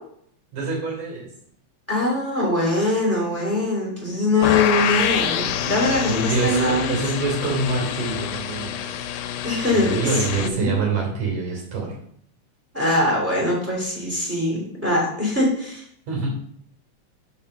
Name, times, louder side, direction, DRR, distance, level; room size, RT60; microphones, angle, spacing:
voice 1, 0.5-1.3 6.1-9.0 9.7-11.9 16.1-16.3, right 3 dB, 75° right, -2 dB, 4.7 m, -26 dB
voice 2, 1.9-6.9 9.4-10.8 12.7-15.8, left 2 dB, 5° right, -4 dB, 2.9 m, -22 dB
sound 1, 4.4-10.5, left 9 dB, 90° left, 2.1 m, -26 dB
6.6 x 5.8 x 5.5 m, 0.65 s
omnidirectional pair, 3.4 m